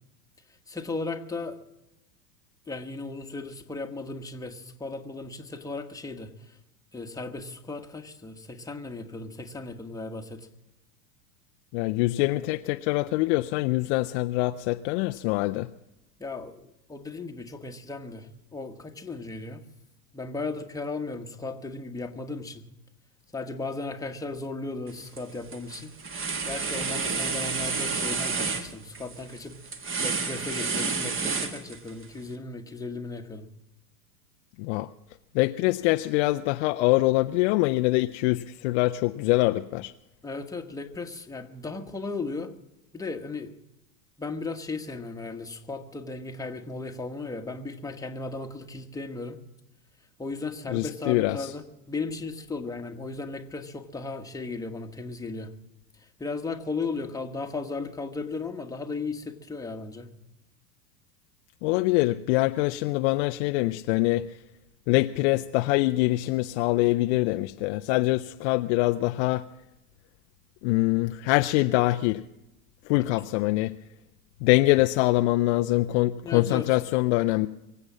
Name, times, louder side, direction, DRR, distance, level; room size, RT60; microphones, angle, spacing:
voice 1, 0.7-1.6 2.7-6.3 6.9-10.5 16.2-16.6 16.9-19.6 20.1-22.6 23.3-29.5 30.0-33.5 40.2-42.5 42.9-43.5 44.2-49.4 50.2-55.5 56.2-60.1 76.2-76.8, left 3 dB, 5° left, 5 dB, 1.2 m, -36 dB
voice 2, 11.7-15.7 34.6-34.9 35.3-39.9 50.7-51.5 61.6-64.3 64.9-69.4 70.6-72.2 72.9-73.7 74.4-77.5, left 19 dB, 45° left, 9 dB, 0.5 m, -24 dB
sound 1, 24.9-25.2 25.5-32.0, right 4 dB, 25° right, 1.5 m, -30 dB
24.0 x 8.0 x 7.3 m, 0.94 s
hypercardioid pair, 95°, 50 cm